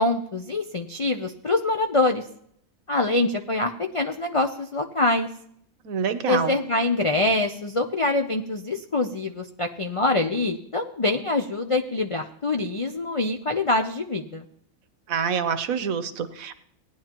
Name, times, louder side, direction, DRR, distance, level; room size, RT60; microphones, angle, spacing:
voice 1, 0.0-2.2 2.9-5.3 6.3-14.4, left 2 dB, 55° left, 4 dB, 0.3 m, -25 dB
voice 2, 5.8-6.6 15.1-16.5, right 6 dB, 75° right, 10 dB, 1.2 m, -26 dB
18.0 x 10.0 x 3.0 m, 0.68 s
omnidirectional pair, 1.5 m